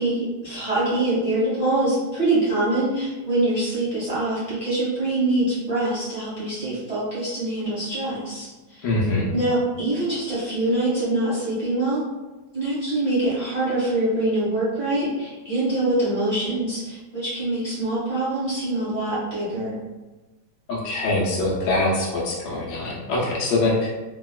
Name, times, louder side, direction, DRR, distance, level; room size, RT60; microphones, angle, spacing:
voice 1, 0.0-8.8 9.3-12.0 12.5-19.8, right 2 dB, 25° right, -11 dB, 0.9 m, -24 dB
voice 2, 8.8-9.3 20.7-23.9, left 2 dB, 75° left, -4 dB, 1.3 m, -23 dB
2.9 x 2.9 x 2.3 m, 1.2 s
omnidirectional pair, 2.2 m